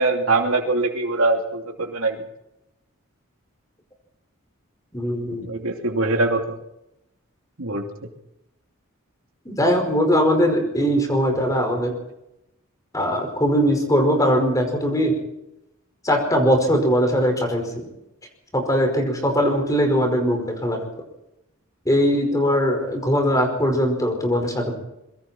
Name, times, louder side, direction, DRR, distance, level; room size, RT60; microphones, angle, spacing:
voice 1, 0.0-2.2 5.4-6.6 7.6-7.8, right 2 dB, 85° right, 2 dB, 2.9 m, -22 dB
voice 2, 4.9-5.5 9.5-11.9 12.9-15.2 16.0-17.8 18.5-20.8 21.9-24.8, equal, 15° left, 3 dB, 5.1 m, -20 dB
25.5 x 23.0 x 4.5 m, 0.84 s
head